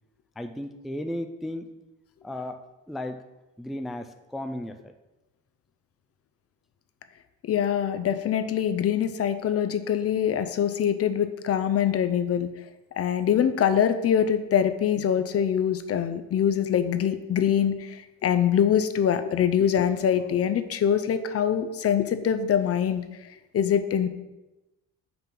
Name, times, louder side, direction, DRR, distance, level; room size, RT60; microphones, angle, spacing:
voice 1, 0.4-1.7 2.2-3.2 3.6-4.9, left 1 dB, ahead, 7 dB, 0.3 m, -35 dB
voice 2, 7.4-12.5 13.0-24.1, left 9 dB, 50° left, 10 dB, 0.6 m, -24 dB
5.8 x 3.7 x 5.8 m, 1.0 s
cardioid pair, 90°, 30 cm